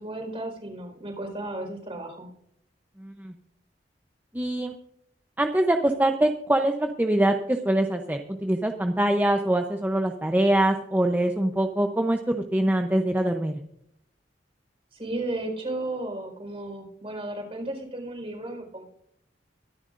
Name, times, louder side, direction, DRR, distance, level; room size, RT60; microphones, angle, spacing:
voice 1, 0.0-2.3 14.9-18.8, right 2 dB, 35° right, 2 dB, 4.5 m, -34 dB
voice 2, 3.0-3.3 4.3-4.7 5.4-13.6, right 1 dB, 10° right, 4 dB, 0.7 m, -24 dB
23.5 x 10.5 x 2.5 m, 0.72 s
head